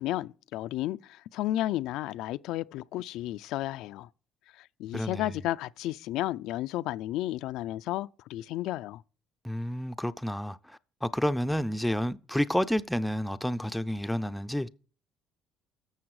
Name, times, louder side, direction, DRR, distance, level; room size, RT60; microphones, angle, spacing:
voice 1, 0.0-4.1 4.5-9.0, left 14 dB, 80° left, 0.4 m, -33 dB
voice 2, 4.9-5.4 9.4-14.7, equal, 5° left, 0.5 m, -30 dB
12.0 x 7.1 x 4.8 m
cardioid pair, 125°, 0 cm